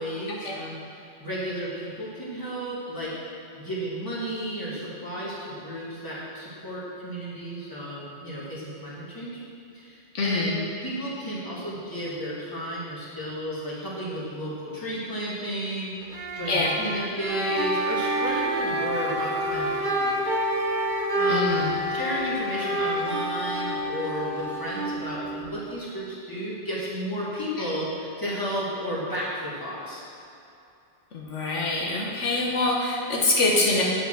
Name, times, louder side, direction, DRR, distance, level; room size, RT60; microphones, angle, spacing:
voice 1, 0.0-3.1 3.6-9.4 9.7-15.9 16.3-20.3 21.1-21.5 21.8-30.0, equal, 15° left, -8 dB, 2.3 m, -33 dB
voice 2, 10.1-10.6 16.5-16.7 21.3-21.7 27.6-27.7 31.1-33.8, left 2 dB, 80° left, -3 dB, 1.5 m, -25 dB
sound 1, 16.0-25.8, right 3 dB, 50° right, 0.7 m, -31 dB
Wind instrument woodwind instrument, 17.3-25.3, left 2 dB, 70° right, 1.1 m, -30 dB
9.4 x 5.7 x 6.1 m, 2.7 s
omnidirectional pair, 1.2 m